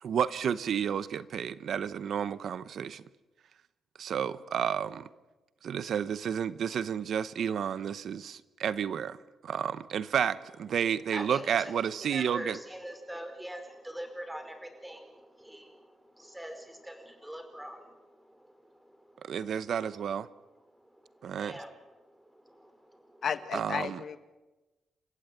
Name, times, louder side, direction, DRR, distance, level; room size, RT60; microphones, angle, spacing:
voice 1, 0.0-3.0 4.0-5.1 5.6-9.2 9.4-12.6 19.3-20.3 21.2-21.5 23.5-24.0, right 8 dB, 70° right, 17 dB, 0.9 m, -31 dB
voice 2, 11.1-19.4 20.7-23.3, equal, 5° right, 6 dB, 4.7 m, -44 dB
voice 3, 23.2-24.2, left 7 dB, 60° left, 12 dB, 1.7 m, -33 dB
30.0 x 15.5 x 9.3 m, 1.1 s
cardioid pair, 105°, 0 cm